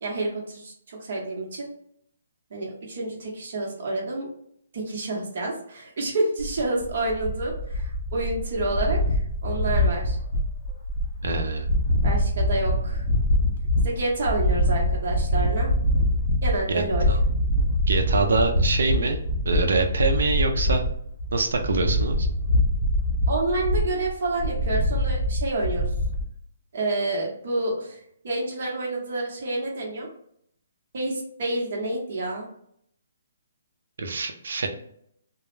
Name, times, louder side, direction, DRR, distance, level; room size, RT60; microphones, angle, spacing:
voice 1, 0.0-1.7 2.5-4.3 4.7-10.2 12.0-13.0 13.8-15.7 16.4-17.1 23.3-25.9 26.7-30.1 30.9-32.5, right 2 dB, 50° right, -2 dB, 0.9 m, -29 dB
sound 1, 6.4-26.2, equal, 40° left, 0.5 m, -24 dB
voice 2, 11.2-11.7 16.7-17.2 17.9-19.2 19.4-20.8 21.3-22.3 34.0-34.7, right 3 dB, 70° right, 4 dB, 0.5 m, -25 dB
2.2 x 2.0 x 3.1 m, 0.68 s
hypercardioid pair, 165°, 0 cm